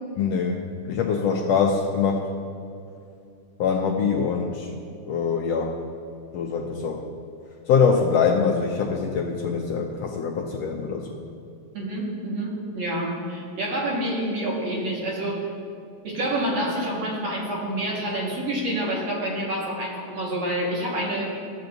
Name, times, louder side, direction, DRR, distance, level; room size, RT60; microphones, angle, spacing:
voice 1, 0.2-2.3 3.6-4.8 5.1-5.7 6.3-7.1 7.7-11.2, left 6 dB, 85° left, 1 dB, 1.4 m, -24 dB
voice 2, 11.7-15.4 16.0-21.3, right 1 dB, 60° right, -4 dB, 2.6 m, -28 dB
14.5 x 7.8 x 2.6 m, 2.6 s
omnidirectional pair, 3.4 m